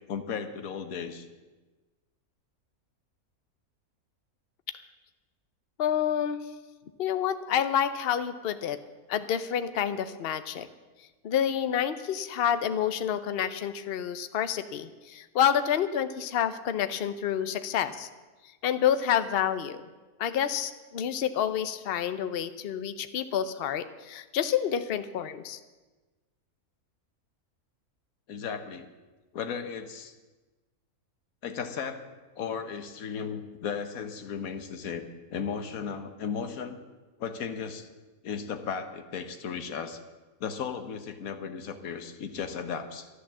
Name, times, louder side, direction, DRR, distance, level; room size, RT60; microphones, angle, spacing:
voice 1, 0.1-1.3 28.3-28.9 29.3-30.1 31.4-32.0 32.3-36.8 37.2-37.9 38.2-40.0 40.4-43.1, left 6 dB, 75° left, 8 dB, 1.4 m, -35 dB
voice 2, 5.8-6.4 7.0-8.8 9.1-10.7 11.2-18.1 18.6-19.8 20.2-25.6, left 9 dB, 50° left, 12 dB, 0.8 m, -28 dB
12.0 x 11.5 x 7.3 m, 1.2 s
omnidirectional pair, 1.5 m